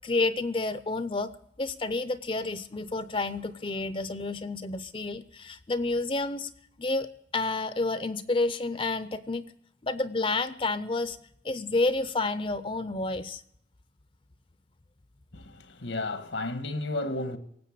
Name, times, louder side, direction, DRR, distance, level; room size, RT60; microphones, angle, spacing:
voice 1, 0.0-1.3 1.6-6.5 6.8-7.1 7.3-9.4 9.8-11.2 11.4-13.4, left 2 dB, 30° left, 0.5 m, -29 dB
voice 2, 15.3-17.4, left 2 dB, 85° left, 1.4 m, -33 dB
18.0 x 7.9 x 8.5 m
head